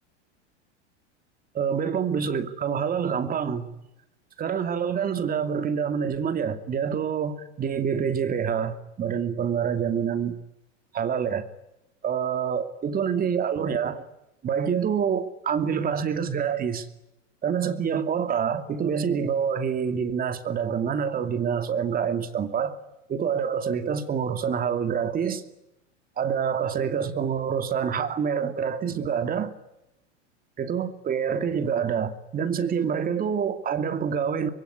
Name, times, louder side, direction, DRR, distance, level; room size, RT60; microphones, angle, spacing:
voice 1, 1.5-3.7 4.4-10.4 10.9-11.5 12.0-14.0 14.4-16.9 17.4-22.8 23.1-25.4 26.2-29.6 30.6-34.5, right 7 dB, 25° right, 2.5 m, -26 dB
25.0 x 22.5 x 9.9 m
supercardioid pair, 130°, 36 cm